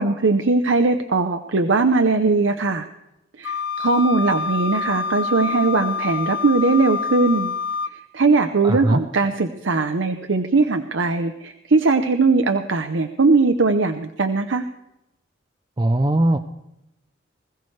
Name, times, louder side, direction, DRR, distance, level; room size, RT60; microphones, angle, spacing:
voice 1, 0.0-2.9 3.4-7.5 7.9-14.6, right 3 dB, 75° right, 7 dB, 0.7 m, -20 dB
Wind instrument woodwind instrument, 3.4-7.9, left 5 dB, 75° left, 0.7 m, -27 dB
voice 2, 8.6-9.0 15.8-16.4, right 1 dB, 20° right, 7 dB, 0.5 m, -19 dB
20.5 x 15.5 x 3.2 m, 0.88 s
head